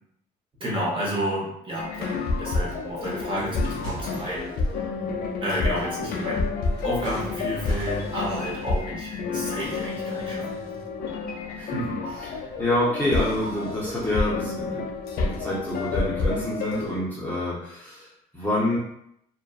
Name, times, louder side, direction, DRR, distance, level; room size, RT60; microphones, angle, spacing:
voice 1, 0.6-4.5 5.4-6.5 6.8-10.4, equal, 30° right, -6 dB, 0.9 m, -30 dB
sound 1, 1.8-17.0, left 3 dB, 65° left, 0.4 m, -29 dB
sound 2, 3.3-4.9 5.7-5.9 6.7-8.8, right 1 dB, 75° right, 1.1 m, -38 dB
voice 2, 11.6-14.8 15.2-18.8, left 1 dB, 10° left, -9 dB, 0.7 m, -27 dB
2.5 x 2.2 x 2.3 m, 0.76 s
cardioid pair, 110°, 17 cm